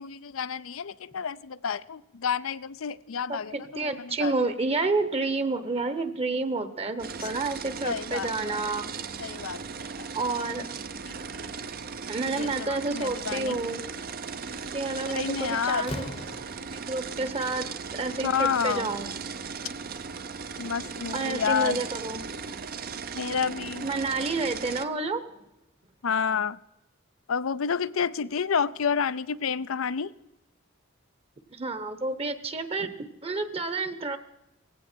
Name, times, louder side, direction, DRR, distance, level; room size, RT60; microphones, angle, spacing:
voice 1, 0.0-4.5 7.2-7.3 7.8-8.6 9.2-10.1 10.4-10.6 11.1-11.2 12.3-13.6 15.1-15.8 18.2-18.9 20.6-21.8 23.1-23.9 26.0-26.6 27.3-30.1, left 6 dB, 80° left, 0.5 m, -30 dB
voice 2, 3.3-8.9 10.1-10.7 12.1-13.8 14.7-16.0 16.7-17.7 17.9-19.1 21.1-22.2 23.8-25.2 31.5-32.9 33.2-34.2, right 3 dB, 30° right, 1.0 m, -29 dB
sound 1, 7.0-24.8, right 5 dB, 45° right, 0.7 m, -37 dB
Slam, 14.5-14.7 15.1-17.0, left 2 dB, 30° left, 0.8 m, -40 dB
18.5 x 16.0 x 4.5 m
head